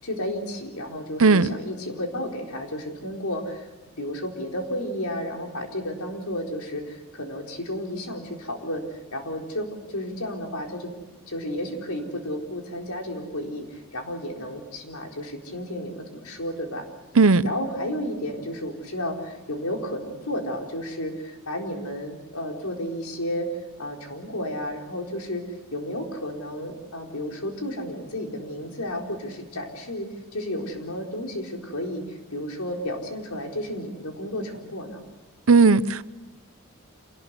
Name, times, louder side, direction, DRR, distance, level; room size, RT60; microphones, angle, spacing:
voice 1, 0.0-3.7 4.0-10.9 11.3-16.8 17.4-23.5 23.8-25.4 25.7-35.0, left 1 dB, 80° left, 4.4 m, -32 dB
voice 2, 1.2-1.6 17.1-17.5 35.5-36.0, right 4 dB, 70° right, 0.7 m, -16 dB
27.5 x 19.0 x 8.2 m
head